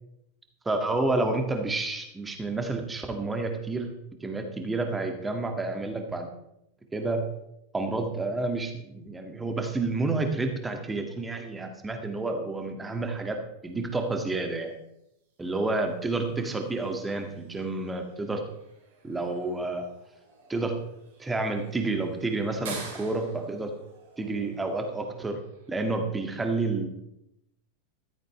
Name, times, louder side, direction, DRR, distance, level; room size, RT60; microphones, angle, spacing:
voice 1, 0.7-3.9 4.2-6.3 6.9-7.2 7.7-14.7 15.4-18.4 19.0-19.8 20.5-20.8 21.2-23.7 24.2-25.4 25.7-26.9, right 2 dB, 10° right, 4 dB, 2.1 m, -29 dB
sound 1, 14.2-26.1, right 4 dB, 55° right, 4.1 m, -49 dB
14.5 x 14.0 x 3.3 m, 0.82 s
figure-of-eight pair, 90°, 0 cm